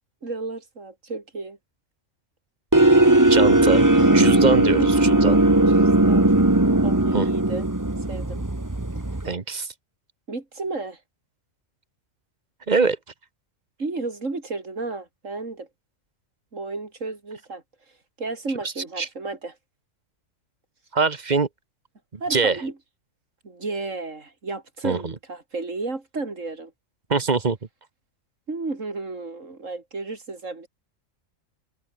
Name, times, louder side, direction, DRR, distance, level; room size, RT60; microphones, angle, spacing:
voice 1, 0.2-1.6 3.8-3.9 4.7-4.9 5.7-6.4 6.8-7.7 8.1-8.4 10.3-11.0 13.8-15.7 16.5-17.6 18.2-19.5 22.2-22.7 23.4-26.7 28.5-30.7, right 3 dB, 70° right, 4.1 m, -32 dB
sound 1, 2.7-9.3, right 2 dB, 15° right, 1.6 m, -18 dB
voice 2, 3.2-5.4 7.1-7.3 9.2-9.7 12.7-13.0 19.0-19.1 20.9-21.5 22.3-22.6 24.8-25.1 27.1-27.6, right 4 dB, 35° right, 1.2 m, -23 dB
omnidirectional pair, 1.4 m